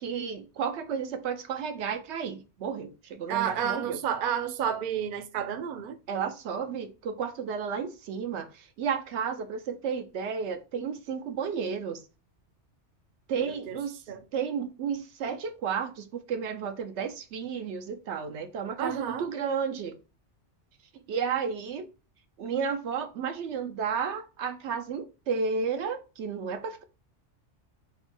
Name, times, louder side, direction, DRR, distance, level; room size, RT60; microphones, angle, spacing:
voice 1, 0.0-4.0 6.1-12.0 13.3-14.0 14.3-20.0 21.1-21.9 22.4-26.8, right 6 dB, 75° right, 0.9 m, -32 dB
voice 2, 3.3-6.0 13.4-13.8 14.1-14.2 18.8-19.3, right 9 dB, 60° right, 0.6 m, -31 dB
3.7 x 2.1 x 4.4 m
omnidirectional pair, 1.2 m